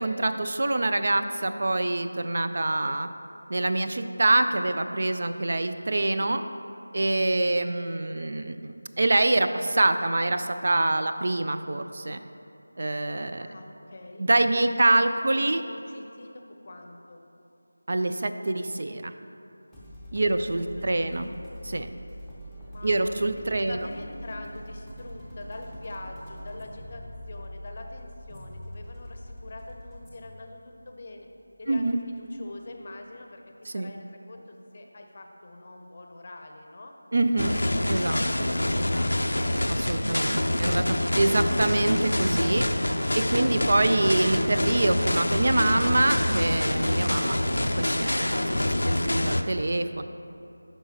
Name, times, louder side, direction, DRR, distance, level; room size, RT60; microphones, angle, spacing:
voice 1, 0.0-3.1 3.5-6.4 6.9-12.2 12.8-13.5 14.2-15.6 17.9-19.1 20.1-21.3 21.6-21.9 22.8-23.8 31.7-32.0 33.7-33.9 37.1-37.6 37.9-38.5 39.7-42.7 43.1-50.0, right 2 dB, 50° right, 9 dB, 0.3 m, -25 dB
voice 2, 13.4-14.3 14.6-14.8 15.4-17.3 20.2-20.5 20.8-21.4 22.7-31.3 31.6-33.4 33.7-36.9 37.9-39.4, left 2 dB, 35° left, 3 dB, 0.6 m, -44 dB
sound 1, 19.7-33.1, equal, 5° right, 0.7 m, -44 dB
sound 2, 37.4-49.4, left 1 dB, 80° left, 0.4 m, -26 dB
9.8 x 5.6 x 2.8 m, 2.7 s
figure-of-eight pair, 170°, 0 cm